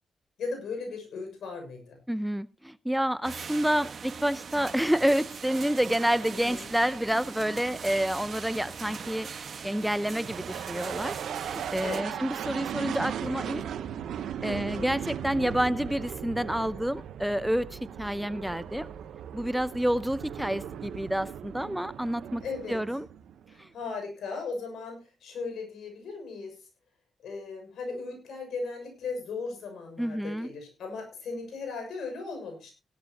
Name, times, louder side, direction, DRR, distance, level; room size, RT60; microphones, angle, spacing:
voice 1, 0.4-2.0 6.2-6.7 11.8-12.1 14.5-15.0 22.4-22.8 23.5-26.6 27.2-32.7, left 4 dB, 80° left, 6.4 m, -37 dB
voice 2, 2.1-9.3 9.6-11.2 11.4-13.6 14.1-18.9 19.3-22.4 22.7-23.1 23.6-23.7 30.0-30.5, equal, 5° right, 0.7 m, -29 dB
sound 1, 3.2-12.0, right 6 dB, 60° right, 1.5 m, -41 dB
sound 2, 7.7-23.6, right 9 dB, 85° right, 1.1 m, -38 dB
17.0 x 12.0 x 3.0 m
cardioid pair, 65°, 0 cm